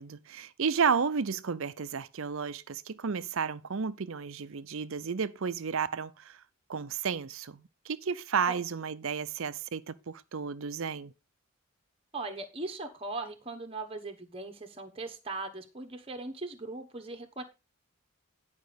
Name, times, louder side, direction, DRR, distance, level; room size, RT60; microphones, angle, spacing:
voice 1, 0.0-6.4 6.7-11.1, right 6 dB, 65° right, 0.6 m, -32 dB
voice 2, 12.1-17.4, right 2 dB, 25° right, 1.1 m, -39 dB
10.5 x 5.2 x 5.1 m
head